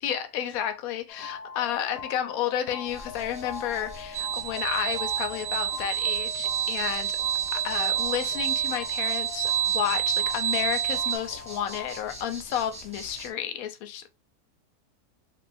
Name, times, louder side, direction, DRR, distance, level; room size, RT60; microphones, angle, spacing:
voice 1, 0.0-7.2 7.5-14.1, left 10 dB, 70° left, 1.0 m, -31 dB
sound 1, 1.1-12.0, left 6 dB, 90° left, 1.2 m, -41 dB
sound 2, 2.8-13.3, right 1 dB, 5° right, 0.8 m, -44 dB
sound 3, 4.1-11.2, right 11 dB, 80° right, 0.5 m, -28 dB
3.2 x 2.6 x 3.3 m
omnidirectional pair, 1.6 m